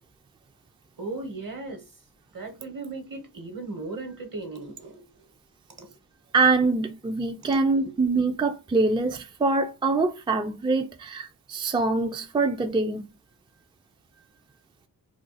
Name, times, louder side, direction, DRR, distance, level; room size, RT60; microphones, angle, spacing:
voice 1, 1.0-1.8 2.3-5.2 5.8-5.9 7.8-7.9 14.1-14.2, right 3 dB, 55° right, 1.1 m, -37 dB
voice 2, 6.3-13.1, right 3 dB, 15° right, 0.3 m, -24 dB
2.4 x 2.4 x 3.9 m
cardioid pair, 45°, 40 cm